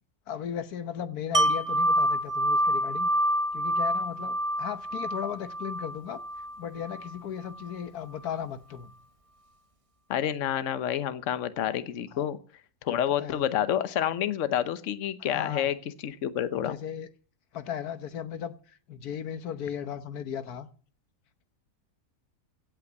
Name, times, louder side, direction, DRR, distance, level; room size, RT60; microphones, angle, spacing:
voice 1, 0.3-3.1 3.5-6.2 6.6-8.9 12.1-12.3 12.9-13.5 15.3-15.7 16.5-17.1 17.5-20.7, left 8 dB, 90° left, 1.5 m, -36 dB
Wind chime, 1.3-7.1 7.5-7.7, equal, 30° right, 0.7 m, -27 dB
voice 2, 10.1-12.4 12.8-15.7 16.0-16.8, left 10 dB, 60° left, 1.2 m, -28 dB
16.5 x 6.0 x 7.9 m
omnidirectional pair, 1.6 m